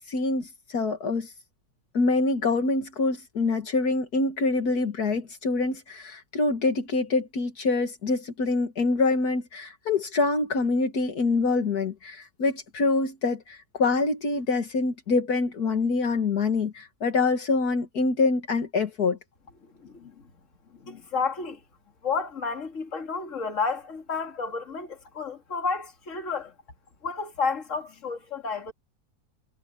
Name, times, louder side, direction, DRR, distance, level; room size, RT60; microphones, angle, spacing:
voice 1, 0.1-1.3 1.9-19.2, left 3 dB, 75° left, 2.2 m, -25 dB
voice 2, 19.8-20.2 20.7-21.6 22.0-26.5 27.0-28.7, left 5 dB, 50° left, 2.6 m, -31 dB
omnidirectional pair, 1.7 m